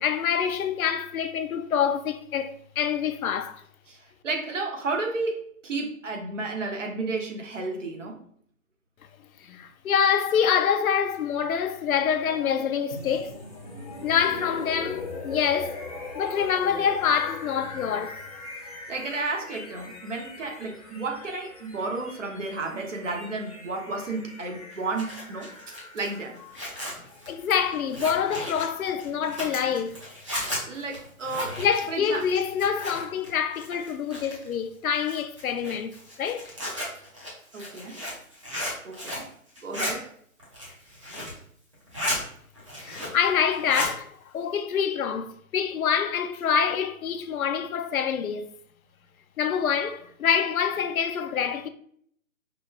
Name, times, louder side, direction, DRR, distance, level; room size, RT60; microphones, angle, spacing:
voice 1, 0.0-3.6 9.4-13.5 14.0-15.8 16.1-18.2 27.3-30.0 31.6-35.9 36.2-36.5 42.8-48.5 49.4-51.7, left 7 dB, 80° left, 0.5 m, -26 dB
voice 2, 4.2-8.2 18.9-25.5 25.9-26.4 30.3-31.6 31.9-32.2 37.5-37.9 38.8-39.2 39.6-40.1, right 3 dB, 60° right, 0.9 m, -32 dB
sound 1, 12.9-28.8, left 2 dB, 30° left, 0.4 m, -41 dB
Zipper (clothing), 24.7-33.3 33.5-34.5 35.0-39.3 39.6-39.9 40.4-41.4 41.7-42.2 42.6-43.3 43.5-43.9, left 1 dB, 25° right, 0.7 m, -34 dB
5.0 x 2.3 x 2.2 m
hypercardioid pair, 165°, 42 cm